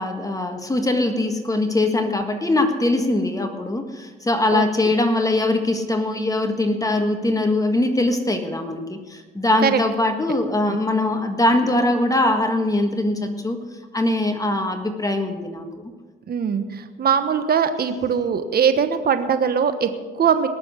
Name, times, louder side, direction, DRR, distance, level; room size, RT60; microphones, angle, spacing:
voice 1, 0.0-13.6 13.9-15.9, left 2 dB, 15° left, 5 dB, 1.6 m, -22 dB
voice 2, 16.3-20.5, right 7 dB, 50° right, 9 dB, 1.2 m, -21 dB
19.5 x 6.9 x 8.2 m, 1.3 s
cardioid pair, 90°, 20 cm